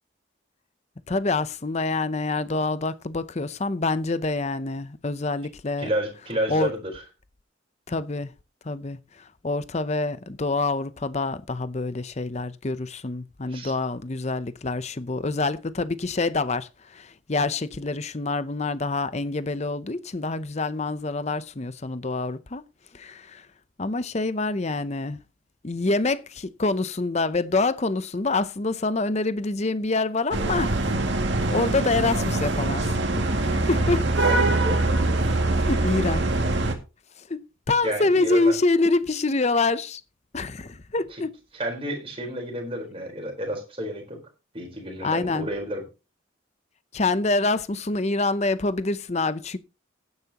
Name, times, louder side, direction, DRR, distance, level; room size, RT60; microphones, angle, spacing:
voice 1, 1.1-5.9 6.5-6.7 7.9-8.3 8.6-9.0 9.4-22.6 22.9-23.4 23.8-25.2 25.6-34.1 35.7-36.3 37.3-37.4 37.7-40.0 40.3-41.3 45.0-45.5 46.9-49.6, left 3 dB, 35° left, 0.6 m, -26 dB
voice 2, 5.8-7.0 13.5-13.7 34.2-34.8 37.8-38.5 41.1-41.2 41.5-44.2 44.5-45.8, right 1 dB, 30° right, 4.2 m, -31 dB
sound 1, 30.3-36.7, right 2 dB, 60° right, 2.1 m, -23 dB
16.0 x 9.6 x 2.9 m
head